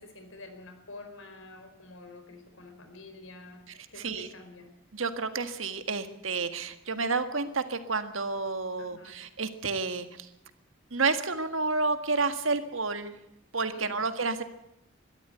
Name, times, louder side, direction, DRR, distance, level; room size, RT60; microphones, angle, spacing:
voice 1, 0.0-3.6 3.9-4.7 8.8-9.2 13.7-14.0, left 2 dB, 85° left, 6 dB, 4.6 m, -48 dB
voice 2, 3.9-4.3 4.9-10.3 10.9-13.2 13.5-14.4, right 4 dB, 85° right, 9 dB, 1.7 m, -30 dB
22.5 x 13.5 x 9.1 m, 0.83 s
head